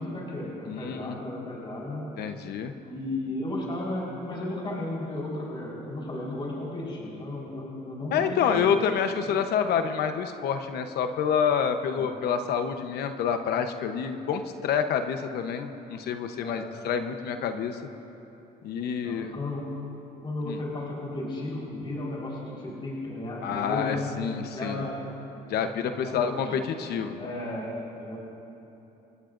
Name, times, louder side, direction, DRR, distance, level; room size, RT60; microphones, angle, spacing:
voice 1, 0.0-2.1 2.8-8.7 11.8-12.0 16.4-16.8 18.7-19.7 20.2-24.2 24.5-25.1 26.0-26.5 27.2-27.7 28.0-28.2, left 1 dB, 30° left, -4 dB, 4.4 m, -34 dB
voice 2, 0.7-1.2 2.2-2.7 8.1-17.8 18.6-19.4 20.4-20.6 23.4-24.8 25.5-27.3, left 7 dB, 70° left, 7 dB, 1.0 m, -28 dB
27.5 x 18.0 x 2.6 m, 3.0 s
cardioid pair, 110°, 17 cm